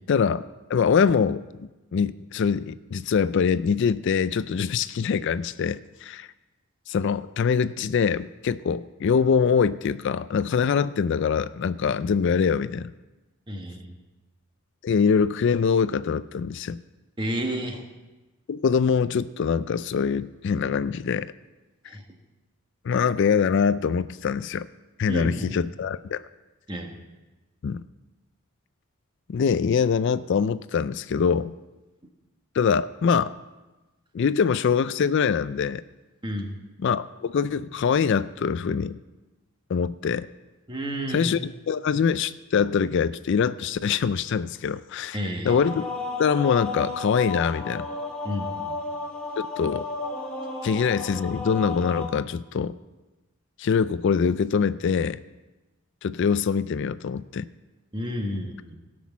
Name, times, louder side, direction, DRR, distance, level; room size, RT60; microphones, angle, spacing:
voice 1, 0.1-0.4 0.7-6.3 6.9-12.9 14.8-16.8 18.5-21.3 22.8-24.7 25.0-26.2 27.6-27.8 29.3-31.5 32.5-33.3 34.1-35.8 36.8-39.0 39.7-40.3 41.1-41.4 41.7-45.2 45.4-45.8 46.2-47.8 49.6-49.9 50.6-52.7 53.6-55.2 56.0-57.5, left 6 dB, 55° left, 15 dB, 0.3 m, -24 dB
voice 2, 13.5-13.9 17.2-17.8 21.9-22.0 25.1-25.6 26.7-26.9 36.2-36.5 40.7-41.3 45.1-45.6 48.2-48.7 57.9-58.7, equal, 20° right, 3 dB, 1.4 m, -31 dB
sound 1, 45.4-52.1, left 3 dB, 5° left, 1.9 m, -33 dB
17.5 x 6.2 x 7.1 m, 1.1 s
head